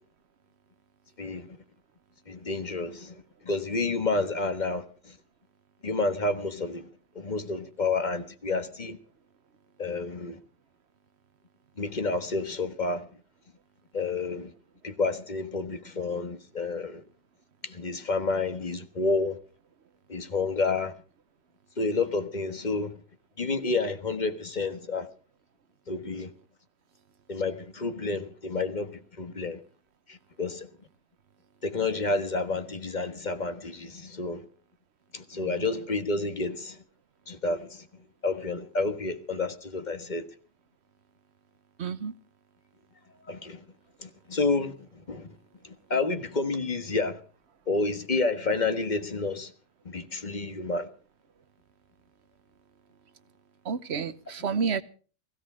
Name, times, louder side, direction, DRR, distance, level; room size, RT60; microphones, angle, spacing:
voice 1, 1.2-1.5 2.3-5.2 5.8-6.9 7.2-9.0 9.8-10.4 11.8-13.1 13.9-14.5 14.8-17.0 17.6-19.4 20.1-20.9 21.8-22.9 23.4-25.1 25.9-26.3 27.3-29.6 30.1-30.7 31.6-34.4 35.1-36.8 37.3-37.9 38.2-40.3 43.3-43.6 44.0-45.3 45.6-47.2 47.7-49.5 49.9-50.9, left 3 dB, 35° left, 1.6 m, -30 dB
voice 2, 41.8-42.1 53.6-54.8, right 6 dB, 60° right, 1.2 m, -30 dB
17.0 x 16.0 x 4.9 m
omnidirectional pair, 1.3 m